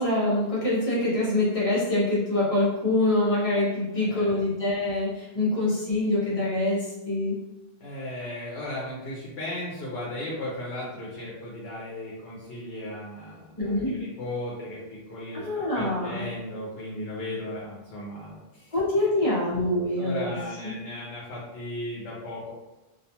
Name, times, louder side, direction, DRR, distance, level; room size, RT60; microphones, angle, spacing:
voice 1, 0.0-7.4 13.6-13.9 15.3-16.3 18.7-20.3 20.6-20.7, left 1 dB, 35° left, -8 dB, 0.9 m, -25 dB
voice 2, 4.0-4.5 7.8-18.7 20.0-22.5, left 1 dB, 70° left, -5 dB, 0.9 m, -36 dB
2.4 x 2.3 x 2.8 m, 1.0 s
omnidirectional pair, 1.0 m